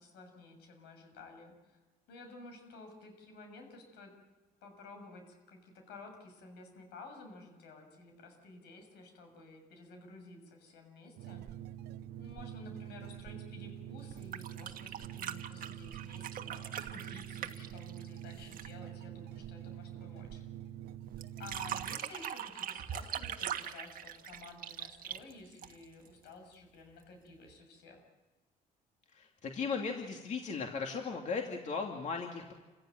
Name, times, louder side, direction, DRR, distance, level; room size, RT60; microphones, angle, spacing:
voice 1, 0.0-1.8 2.1-4.1 4.6-11.4 12.2-20.4 21.4-28.0, left 3 dB, 80° left, 4 dB, 7.2 m, -53 dB
sound 1, 11.2-22.0, right 11 dB, 75° right, 0.8 m, -46 dB
sound 2, 14.1-18.8 21.2-26.1 27.5-27.6, right 9 dB, 55° right, 1.5 m, -41 dB
voice 2, 29.1-32.5, left 5 dB, 45° left, 2 dB, 2.6 m, -37 dB
28.5 x 16.0 x 9.2 m, 1.2 s
cardioid pair, 110°, 17 cm